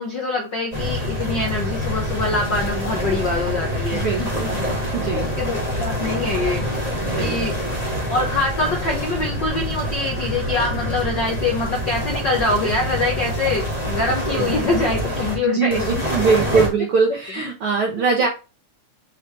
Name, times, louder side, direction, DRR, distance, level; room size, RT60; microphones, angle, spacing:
voice 1, 0.0-4.5 5.2-6.6 7.2-7.5 8.1-16.0 16.5-16.6, left 3 dB, 80° left, 1 dB, 1.0 m, -24 dB
sound 1, 0.7-15.3 15.7-16.7, equal, 15° left, 2.1 m, -26 dB
voice 2, 3.9-4.6 4.9-5.3 7.0-7.5 14.3-14.5 15.4-18.3, right 5 dB, 90° right, 1 dB, 1.2 m, -22 dB
5.6 x 5.5 x 3.2 m, 0.30 s
omnidirectional pair, 3.9 m